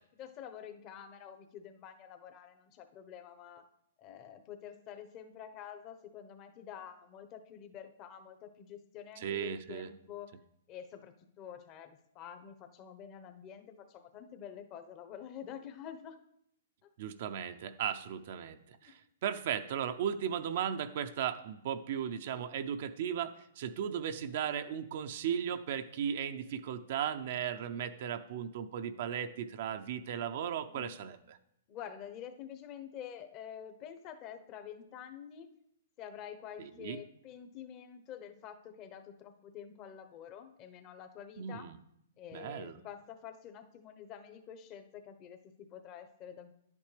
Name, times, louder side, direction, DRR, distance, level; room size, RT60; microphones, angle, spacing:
voice 1, 0.2-3.6 4.0-10.3 10.7-16.2 18.8-19.0 22.3-22.4 30.7-30.9 31.7-35.5 36.0-41.7 42.2-46.5, left 9 dB, 35° left, 8 dB, 1.0 m, -48 dB
voice 2, 9.2-9.9 17.0-31.4 36.6-37.0 41.4-41.8 42.3-42.8, right 8 dB, 55° right, 8 dB, 0.5 m, -36 dB
10.5 x 8.4 x 3.3 m, 0.74 s
hypercardioid pair, 130°, 0 cm